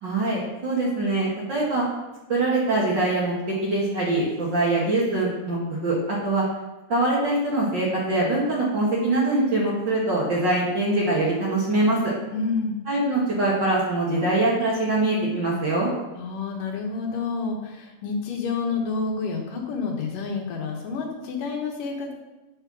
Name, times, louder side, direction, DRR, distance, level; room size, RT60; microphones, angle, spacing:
voice 1, 0.0-1.9 2.3-6.4 6.9-12.1 12.9-15.9, right 2 dB, 50° right, -5 dB, 1.4 m, -23 dB
voice 2, 12.3-12.8 16.2-22.1, left 4 dB, 65° left, 0 dB, 2.7 m, -29 dB
9.0 x 4.4 x 6.1 m, 1.0 s
omnidirectional pair, 4.5 m